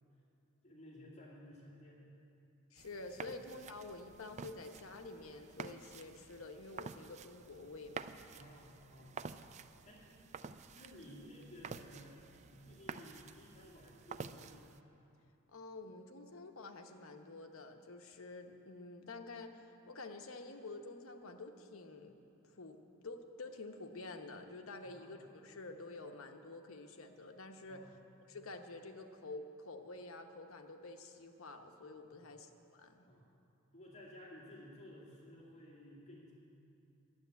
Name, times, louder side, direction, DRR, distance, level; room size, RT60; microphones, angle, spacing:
voice 1, 0.6-2.0 8.3-9.2 9.8-10.0 10.7-12.3 12.5-14.6 24.8-25.2 27.7-27.9 32.1-32.4 33.0-33.2 33.7-36.3, left 1 dB, 35° left, -5 dB, 2.3 m, -55 dB
voice 2, 2.7-8.2 15.5-22.2 22.4-22.8 23.0-27.9 28.3-33.1, left 3 dB, 75° left, 5 dB, 0.9 m, -49 dB
sound 1, 2.8-14.8, right 5 dB, 35° right, 0.3 m, -50 dB
11.5 x 7.8 x 9.4 m, 2.7 s
head